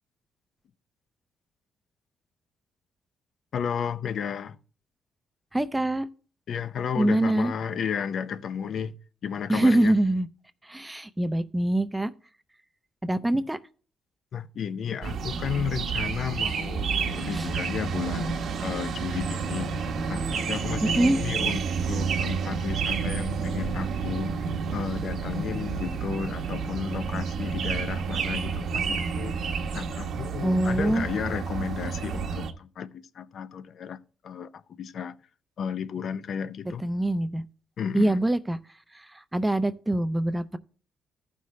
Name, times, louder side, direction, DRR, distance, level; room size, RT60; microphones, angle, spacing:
voice 1, 3.5-4.6 6.5-8.9 9.2-9.9 14.3-24.4 24.7-29.4 29.7-34.0 34.2-35.1 35.6-36.8 37.8-38.2, left 7 dB, 60° left, 0.6 m, -33 dB
voice 2, 5.5-6.1 7.0-7.5 9.5-10.3 10.6-12.1 13.0-13.6 17.3-17.5 20.8-21.2 30.4-31.1 36.8-37.4 37.9-38.6 38.9-40.6, right 1 dB, 10° right, 0.5 m, -24 dB
sound 1, 15.0-32.5, right 5 dB, 70° right, 1.1 m, -30 dB
14.5 x 5.6 x 3.2 m
cardioid pair, 90°, 0 cm